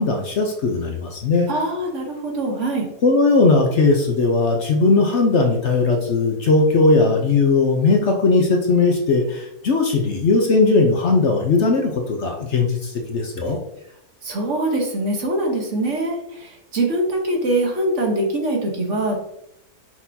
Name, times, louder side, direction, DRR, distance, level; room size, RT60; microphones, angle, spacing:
voice 1, 0.0-1.5 3.0-13.6, left 3 dB, 55° left, 2 dB, 0.9 m, -18 dB
voice 2, 1.5-2.9 14.2-19.2, right 1 dB, 55° right, 1 dB, 1.4 m, -23 dB
6.1 x 5.9 x 2.8 m, 0.79 s
omnidirectional pair, 1.6 m